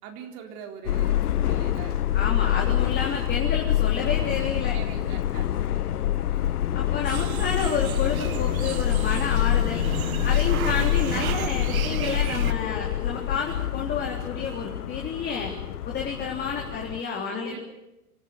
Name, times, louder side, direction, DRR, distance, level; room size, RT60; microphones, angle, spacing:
voice 1, 0.0-2.7 4.7-6.7 17.3-17.6, right 7 dB, 40° right, 3 dB, 3.8 m, -43 dB
Subway metro underground, 0.8-17.0, left 12 dB, 75° left, 1.1 m, -26 dB
voice 2, 2.1-4.8 6.7-9.8 10.2-15.5 15.8-17.6, left 6 dB, 20° left, 0 dB, 3.6 m, -30 dB
sound 1, 7.0-12.5, right 12 dB, 65° right, 1.2 m, -34 dB
26.5 x 14.5 x 9.7 m, 0.94 s
hypercardioid pair, 125°, 45 cm